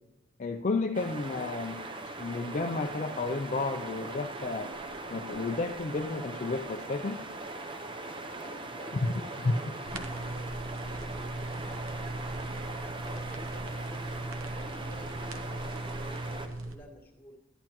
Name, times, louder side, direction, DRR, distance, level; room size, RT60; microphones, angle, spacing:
voice 1, 0.4-1.8 2.2-4.7 5.1-7.2 8.9-10.0, left 3 dB, 35° left, 4 dB, 0.4 m, -32 dB
sound 1, 0.9-16.5, right 2 dB, 25° right, 0.6 m, -40 dB
voice 2, 8.4-13.9 14.6-17.4, equal, 10° left, -3 dB, 1.7 m, -51 dB
sound 2, 9.8-16.8, right 2 dB, 85° right, 0.9 m, -38 dB
12.0 x 11.0 x 3.0 m, 1.1 s
head